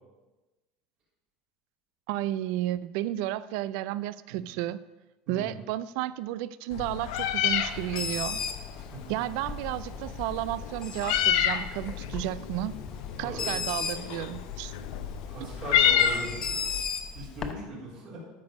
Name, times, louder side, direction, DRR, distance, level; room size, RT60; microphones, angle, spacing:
voice 1, 2.1-4.8 5.3-8.4 9.1-12.7 13.2-14.7, right 14 dB, 65° right, 17 dB, 0.3 m, -32 dB
voice 2, 5.3-5.6 8.8-9.1 13.2-13.6 15.3-16.3 17.1-18.2, right 1 dB, 45° right, -6 dB, 3.5 m, -39 dB
Meow, 6.7-16.8, left 9 dB, 85° left, 0.7 m, -30 dB
Bird, 7.7-17.5, left 5 dB, 20° left, 0.7 m, -37 dB
12.5 x 5.3 x 5.2 m, 1.1 s
cardioid pair, 160°, 3 cm